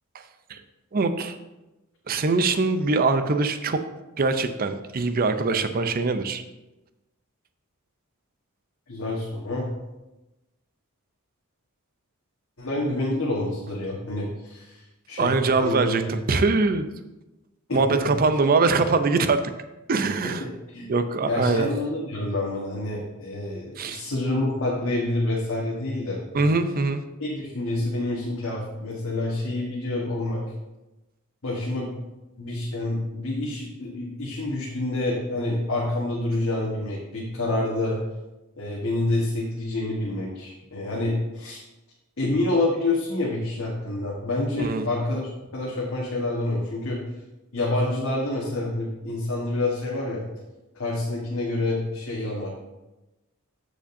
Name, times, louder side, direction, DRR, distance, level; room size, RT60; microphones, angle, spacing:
voice 1, 0.9-1.4 2.1-3.8 4.2-6.4 15.2-16.9 17.7-19.5 19.9-20.4 20.9-21.7 23.8-24.0 26.3-27.0 44.6-44.9, right 3 dB, 40° right, 9 dB, 0.5 m, -23 dB
voice 2, 8.9-9.7 12.6-14.8 15.1-16.1 17.7-18.0 20.2-20.9 21.2-26.5 27.2-30.4 31.4-31.9 32.4-38.0 38.6-41.6 42.2-47.0 47.5-50.2 50.7-52.5, left 2 dB, 60° left, -4 dB, 1.4 m, -27 dB
14.0 x 5.0 x 2.6 m, 1.0 s
head